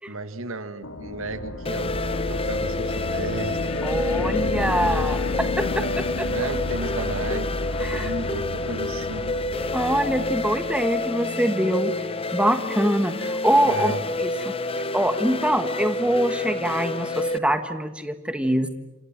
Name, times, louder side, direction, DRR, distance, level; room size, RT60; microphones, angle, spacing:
voice 1, 0.1-2.0 2.3-3.6 5.7-7.5 7.8-9.3 13.7-14.0, right 2 dB, 65° right, 10 dB, 1.8 m, -33 dB
sound 1, 0.8-11.0, left 2 dB, 85° left, 2.3 m, -31 dB
sound 2, 1.6-17.4, left 2 dB, 25° left, 0.9 m, -29 dB
voice 2, 3.8-5.8 6.2-6.3 7.8-8.1 9.7-11.9 12.3-13.9 14.2-14.3 14.9-18.7, right 1 dB, 5° right, 8 dB, 1.6 m, -24 dB
29.5 x 26.0 x 7.5 m, 1.0 s
head